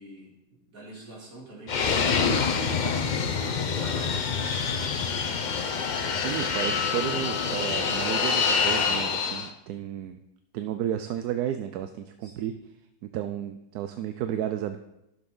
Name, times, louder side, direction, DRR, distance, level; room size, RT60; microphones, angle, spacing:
voice 1, 0.0-5.0 12.2-12.5, right 2 dB, 55° right, -3 dB, 3.1 m, -45 dB
Fixed-wing aircraft airplane, 1.7-9.5, left 5 dB, 70° left, 0.4 m, -26 dB
voice 2, 6.1-10.2 10.5-12.5 13.0-14.8, right 10 dB, 75° right, 9 dB, 1.0 m, -32 dB
14.0 x 7.1 x 3.9 m, 0.89 s
omnidirectional pair, 1.8 m